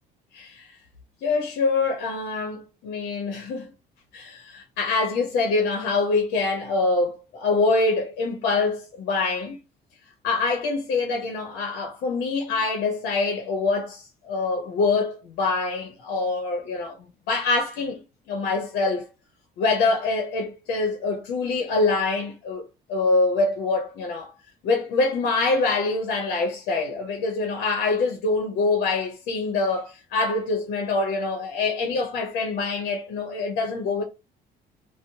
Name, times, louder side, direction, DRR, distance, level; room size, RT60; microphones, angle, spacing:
voice 1, 0.3-0.8 1.2-3.7 4.1-9.6 10.2-18.0 18.3-19.1 19.6-22.6 22.9-24.3 24.6-34.0, left 3 dB, 80° left, 0.7 m, -25 dB
2.7 x 2.0 x 2.8 m
cardioid pair, 110°, 17 cm